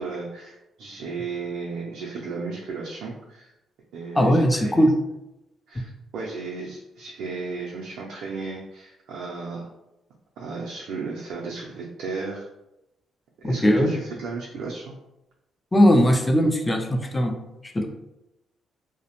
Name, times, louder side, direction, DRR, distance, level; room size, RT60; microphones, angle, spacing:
voice 1, 0.0-3.5 3.9-4.8 5.7-9.7 10.4-12.5 13.4-15.0, right 4 dB, 80° right, -3 dB, 0.3 m, -34 dB
voice 2, 4.2-4.9 13.4-13.9 15.7-17.4 17.7-17.9, equal, 15° left, 5 dB, 0.4 m, -19 dB
2.4 x 2.0 x 2.8 m, 0.91 s
cardioid pair, 90°, 0 cm